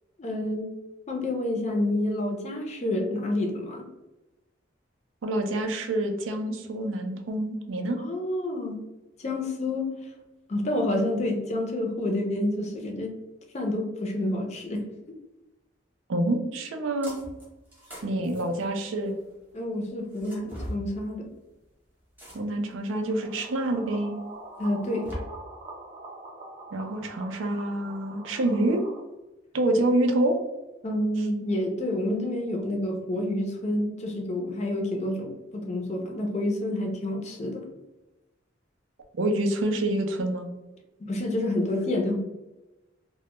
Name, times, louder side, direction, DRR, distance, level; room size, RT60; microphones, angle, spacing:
voice 1, 0.2-0.7 1.1-3.9 8.0-8.8 9.2-9.9 10.5-13.1 13.5-14.8 19.5-21.3 24.6-25.1 30.8-37.7 41.0-42.2, left 1 dB, 35° left, 2 dB, 0.4 m, -28 dB
voice 2, 5.2-8.0 16.1-17.2 18.0-19.1 22.3-24.2 26.7-28.8 29.5-30.4 39.1-40.5, right 1 dB, 90° right, 5 dB, 0.4 m, -27 dB
sound 1, 17.0-17.4 17.7-19.3 20.1-20.8 22.2-22.7 23.4-23.5 24.6-25.2, equal, 10° right, 0.8 m, -40 dB
sound 2, 23.0-29.0, right 2 dB, 35° right, 0.5 m, -44 dB
2.1 x 2.1 x 2.9 m, 1.0 s
head